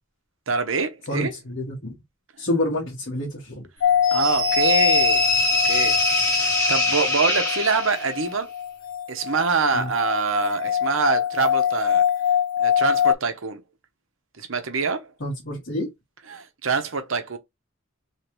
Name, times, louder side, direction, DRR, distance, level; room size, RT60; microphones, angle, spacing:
voice 1, 0.5-1.3 4.1-5.2 5.6-6.0 6.2-8.5 9.1-12.0 12.6-13.6 14.4-15.1 16.3-17.4, right 5 dB, 75° right, 0.8 m, -25 dB
voice 2, 1.1-1.9 2.4-3.7 9.7-9.9 15.2-15.9, left 1 dB, 60° left, 1.4 m, -28 dB
sound 1, 3.8-13.2, left 9 dB, 75° left, 0.3 m, -24 dB
sound 2, 4.0-8.2, left 1 dB, 15° left, 1.1 m, -23 dB
3.3 x 3.1 x 3.0 m
head